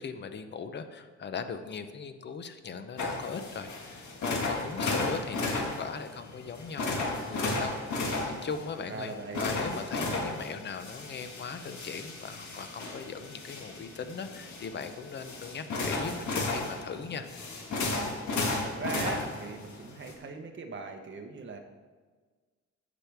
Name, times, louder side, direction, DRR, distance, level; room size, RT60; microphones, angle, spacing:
voice 1, 0.0-9.1 9.4-17.3, left 5 dB, 40° left, 9 dB, 0.6 m, -39 dB
sound 1, 3.0-20.1, left 2 dB, 75° left, 1.7 m, -34 dB
voice 2, 8.9-9.5 18.2-21.6, right 3 dB, 40° right, 3 dB, 1.0 m, -40 dB
15.0 x 6.1 x 3.4 m, 1.4 s
wide cardioid pair, 160°, 29 cm